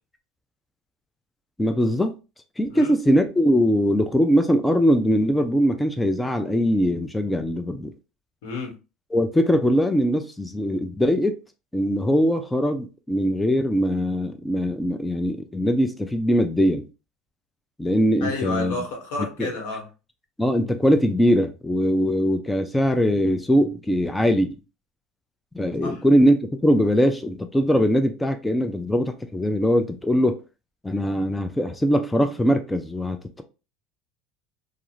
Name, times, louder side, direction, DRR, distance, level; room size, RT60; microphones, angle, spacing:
voice 1, 1.6-2.1 2.6-7.9 9.1-11.4 11.7-16.9 17.8-18.7 19.4-19.5 20.4-24.6 25.5-30.4 30.8-33.4, equal, 5° left, 0.3 m, -21 dB
voice 2, 8.4-8.7 18.2-19.9 25.8-26.0, left 3 dB, 80° left, 1.2 m, -30 dB
2.4 x 2.4 x 3.0 m
supercardioid pair, 130°, 0 cm